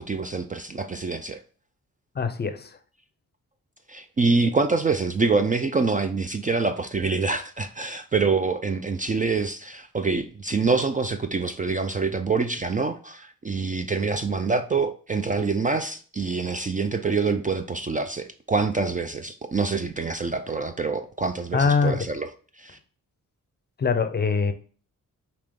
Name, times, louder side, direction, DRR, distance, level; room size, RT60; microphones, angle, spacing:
voice 1, 0.0-1.4 3.9-22.3 22.5-22.8, right 4 dB, 25° right, 7 dB, 0.3 m, -26 dB
voice 2, 2.1-2.8 21.5-22.0 23.8-24.5, left 5 dB, 30° left, 9 dB, 0.6 m, -23 dB
5.1 x 2.9 x 3.5 m, 0.41 s
cardioid pair, 80°, 33 cm